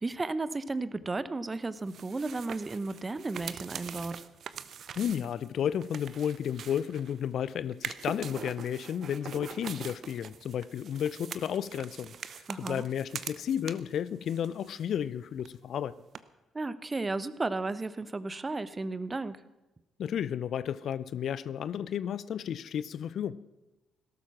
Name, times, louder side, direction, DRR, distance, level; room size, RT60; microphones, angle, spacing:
voice 1, 0.0-4.2 12.5-12.8 16.5-19.4, right 3 dB, 25° right, 15 dB, 0.9 m, -34 dB
sound 1, 1.8-7.3 7.7-14.0 14.3-15.1 15.4-15.5 16.2-16.3, right 7 dB, 55° right, 0.8 m, -43 dB
voice 2, 5.0-15.9 20.0-23.4, left 9 dB, 55° left, 17 dB, 0.5 m, -33 dB
17.5 x 12.5 x 6.0 m, 1.0 s
figure-of-eight pair, 45°, 0 cm